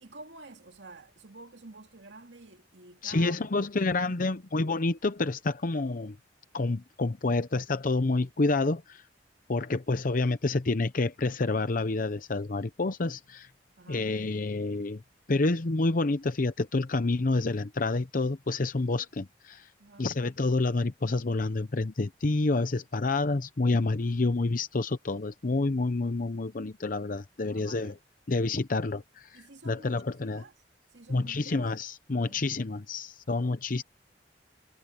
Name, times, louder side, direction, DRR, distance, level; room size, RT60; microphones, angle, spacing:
voice 1, 0.0-4.3 13.8-14.1 19.8-20.1 27.4-28.0 29.3-30.5 30.9-31.7 32.1-32.6, right 2 dB, 85° right, 2.5 m, -50 dB
voice 2, 3.0-6.2 6.5-9.0 9.5-13.5 13.9-15.0 15.3-19.7 20.0-27.9 28.3-30.4 31.1-33.8, left 3 dB, 50° left, 0.7 m, -28 dB
head